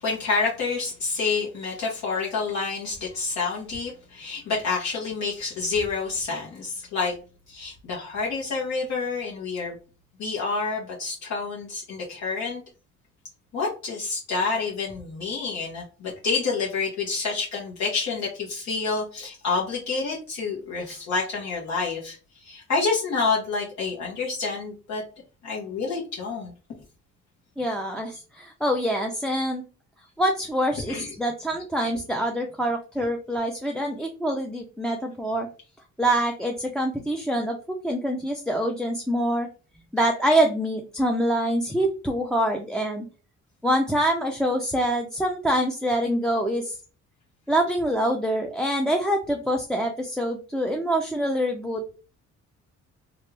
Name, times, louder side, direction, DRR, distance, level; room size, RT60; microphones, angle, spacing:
voice 1, 0.0-7.1 7.5-9.8 10.2-12.6 13.5-25.0 25.4-26.5 30.9-31.1, left 4 dB, 70° left, -4 dB, 1.3 m, -28 dB
voice 2, 27.6-29.6 30.2-35.5 36.0-37.6 37.8-39.5 39.9-43.1 43.6-46.8 47.5-51.8, right 1 dB, ahead, 2 dB, 0.5 m, -25 dB
3.1 x 2.4 x 3.3 m, 0.34 s
cardioid pair, 90°, 30 cm